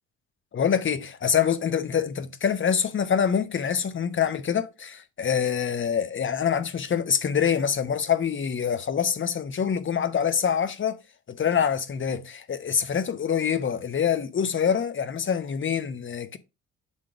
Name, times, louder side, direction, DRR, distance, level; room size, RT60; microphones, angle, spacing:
voice 1, 0.5-11.0 11.3-16.4, left 7 dB, 35° left, 1.0 m, -25 dB
8.2 x 3.8 x 4.7 m
figure-of-eight pair, 50°, 36 cm